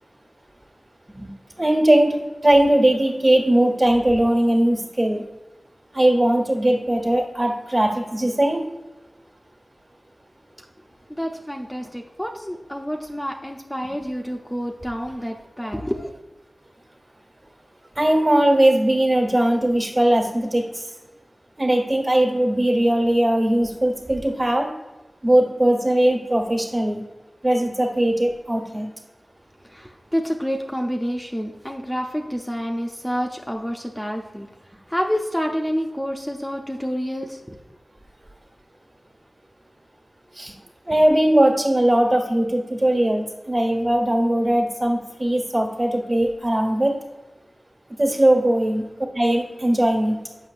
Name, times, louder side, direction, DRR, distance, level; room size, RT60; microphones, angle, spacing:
voice 1, 1.6-5.2 5.9-8.6 17.9-20.9 21.6-24.7 25.2-27.0 27.4-28.9 40.4-40.5 40.9-46.9 48.0-48.8 49.1-50.2, right 1 dB, 45° right, 0 dB, 1.4 m, -19 dB
voice 2, 11.1-16.1 29.6-37.6, equal, 10° left, 1 dB, 0.5 m, -28 dB
7.0 x 5.4 x 2.5 m, 1.1 s
cardioid pair, 45°, 0 cm